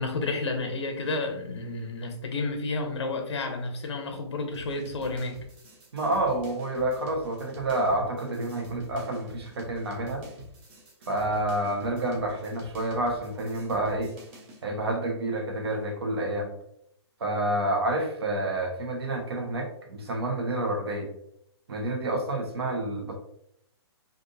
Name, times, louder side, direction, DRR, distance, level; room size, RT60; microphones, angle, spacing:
voice 1, 0.0-5.4, left 3 dB, 90° left, 5 dB, 0.6 m, -31 dB
sound 1, 4.5-14.6, equal, 25° right, 0.7 m, -48 dB
voice 2, 5.9-10.2 11.1-14.1 14.6-16.5 17.2-21.1 21.7-23.1, right 1 dB, 65° right, 1 dB, 1.0 m, -29 dB
3.4 x 2.5 x 2.6 m, 0.74 s
hypercardioid pair, 160°, 14 cm